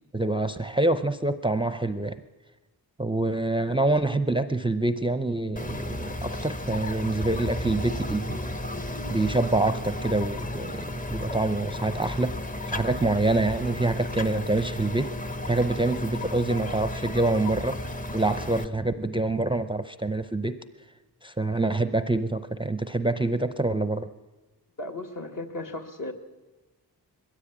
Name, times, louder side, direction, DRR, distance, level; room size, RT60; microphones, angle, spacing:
voice 1, 0.1-2.2 3.0-8.4 9.1-12.3 12.7-15.1 15.5-17.8 18.1-20.6 21.2-24.1, right 2 dB, 15° right, 11 dB, 0.6 m, -26 dB
sound 1, 5.6-18.7, left 1 dB, 20° left, 0.9 m, -33 dB
voice 2, 24.8-26.1, left 2 dB, 55° left, 3 dB, 2.0 m, -35 dB
21.0 x 15.0 x 8.7 m, 1.2 s
wide cardioid pair, 110°, 39 cm